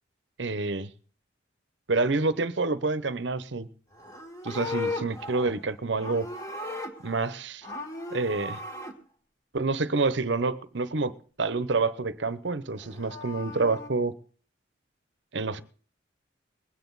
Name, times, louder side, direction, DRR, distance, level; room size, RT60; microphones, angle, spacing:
voice 1, 0.4-0.9 1.9-3.7 4.4-6.3 7.0-7.7 8.1-8.6 9.5-14.1 15.3-15.6, right 3 dB, 70° right, 0.9 m, -28 dB
Livestock farm animals working animals, 3.9-7.3 7.6-8.9 12.7-13.9, left 2 dB, 20° left, 1.8 m, -37 dB
21.0 x 9.3 x 4.0 m
head